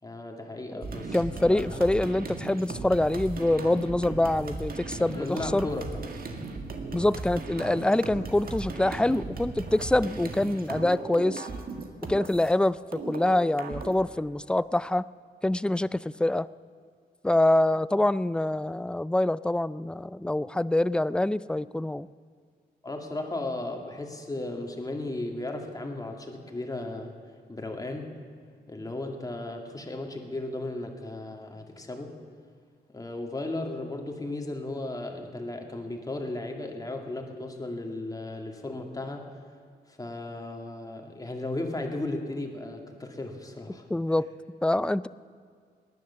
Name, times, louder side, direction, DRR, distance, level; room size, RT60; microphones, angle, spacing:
voice 1, 0.0-1.8 5.1-6.1 22.8-27.1 27.5-28.1 28.7-32.2 32.9-39.2 40.0-43.8, left 2 dB, 20° left, 3 dB, 2.2 m, -35 dB
sound 1, 0.8-12.5 12.9-13.9, right 3 dB, 60° right, 1.7 m, -37 dB
voice 2, 1.1-5.7 6.9-11.5 12.1-15.0 15.4-16.5 17.2-22.1 43.9-44.3 44.6-45.1, left 1 dB, 5° left, 18 dB, 0.3 m, -25 dB
18.5 x 11.0 x 7.0 m, 2.1 s
cardioid pair, 85°, 17 cm